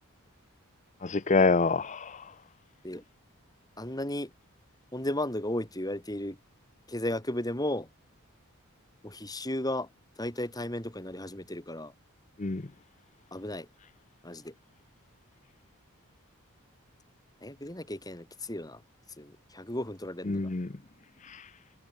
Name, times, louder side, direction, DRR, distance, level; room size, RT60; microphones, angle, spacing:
voice 1, 1.0-2.2 12.4-12.6 20.3-20.7 21.2-21.5, left 3 dB, 35° left, 0.7 m, -26 dB
voice 2, 3.8-4.3 4.9-6.4 6.9-7.9 9.0-9.9 10.2-11.9 13.3-13.7 14.2-14.5 17.4-18.8 19.2-20.5, left 1 dB, 15° left, 4.9 m, -34 dB
head